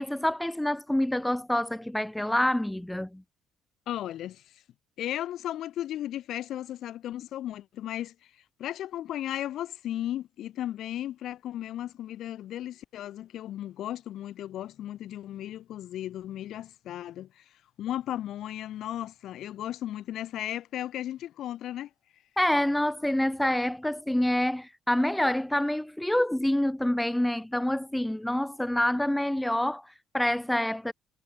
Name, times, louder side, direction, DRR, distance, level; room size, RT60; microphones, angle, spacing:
voice 1, 0.0-3.2 22.4-30.9, left 1 dB, 5° left, 0.9 m, -27 dB
voice 2, 3.9-4.6 5.0-21.9, left 12 dB, 70° left, 4.5 m, -35 dB
hypercardioid pair, 60°, 0 cm